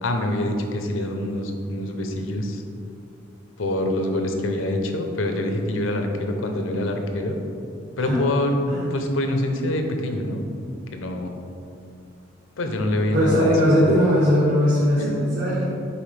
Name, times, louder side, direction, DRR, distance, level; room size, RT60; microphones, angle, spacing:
voice 1, 0.0-2.6 3.6-7.4 8.0-8.6 8.9-10.4 10.9-11.3 12.6-14.0 15.0-15.2, left 1 dB, 75° left, 4 dB, 0.7 m, -25 dB
voice 2, 13.1-15.6, equal, 60° right, -9 dB, 1.4 m, -19 dB
7.0 x 4.7 x 3.3 m, 2.5 s
head